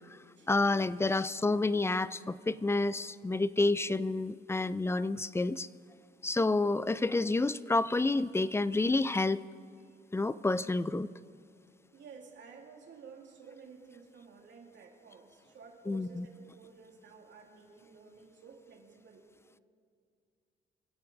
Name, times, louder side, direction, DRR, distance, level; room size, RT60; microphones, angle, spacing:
voice 1, 0.5-5.7 6.2-9.4 10.1-11.1 15.9-16.3, left 2 dB, 15° left, 17 dB, 0.4 m, -29 dB
voice 2, 11.9-19.2, right 5 dB, 65° right, 0 dB, 2.5 m, -53 dB
25.0 x 8.3 x 5.3 m, 2.4 s
cardioid pair, 90°, 20 cm